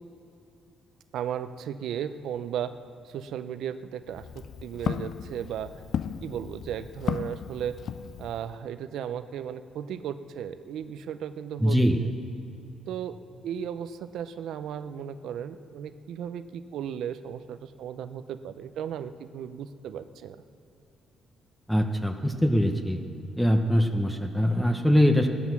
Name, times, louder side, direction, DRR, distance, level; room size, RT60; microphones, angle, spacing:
voice 1, 1.1-2.7 3.0-4.2 4.6-5.7 6.2-7.8 8.2-12.1 12.9-13.2 13.4-20.4, right 9 dB, 80° right, 12 dB, 0.6 m, -35 dB
Walk footsteps, 4.0-8.6, left 8 dB, 65° left, 0.4 m, -35 dB
voice 2, 11.6-12.0 21.7-23.0 23.4-25.3, equal, 5° left, 5 dB, 0.9 m, -22 dB
16.0 x 12.5 x 6.0 m, 2.8 s
cardioid pair, 90°, 0 cm